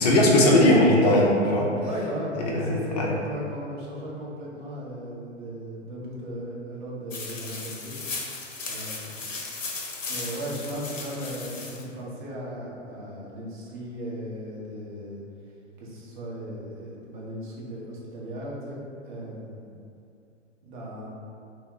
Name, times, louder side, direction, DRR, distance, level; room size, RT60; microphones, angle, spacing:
voice 1, 0.0-1.7 2.4-2.7 3.0-3.1, left 1 dB, 35° left, -3 dB, 0.4 m, -19 dB
voice 2, 1.8-8.0 8.7-9.3 10.1-15.2 15.8-19.6 20.6-21.1, equal, 40° right, -5 dB, 0.7 m, -36 dB
sound 1, 7.1-11.8, left 3 dB, 85° left, 0.5 m, -36 dB
2.1 x 2.0 x 3.6 m, 2.5 s
figure-of-eight pair, 110°, 37 cm